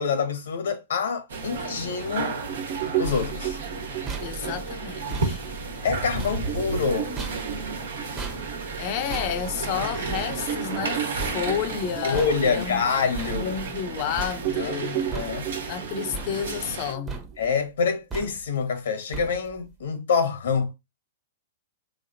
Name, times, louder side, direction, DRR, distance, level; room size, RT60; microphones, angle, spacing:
voice 1, 0.0-2.3 3.0-3.6 5.8-7.1 12.0-13.5 14.6-14.8 15.1-15.5 17.4-20.7, left 5 dB, 75° left, 1.1 m, -26 dB
sound 1, 1.3-16.9, right 4 dB, 80° right, 1.2 m, -33 dB
Suspense Strings, 2.5-9.5 10.0-10.1 10.4-14.0 14.4-17.5, right 10 dB, 40° right, 0.6 m, -34 dB
sound 2, 3.0-13.9 14.2-14.8 15.1-15.8 16.1-16.8 17.1-17.6 18.1-18.7 19.1-19.7, right 4 dB, 20° right, 0.9 m, -38 dB
voice 2, 4.2-5.4 8.8-12.8 13.3-15.0 15.7-17.2, left 9 dB, 45° left, 0.7 m, -31 dB
3.5 x 3.3 x 2.6 m
hypercardioid pair, 130°, 0 cm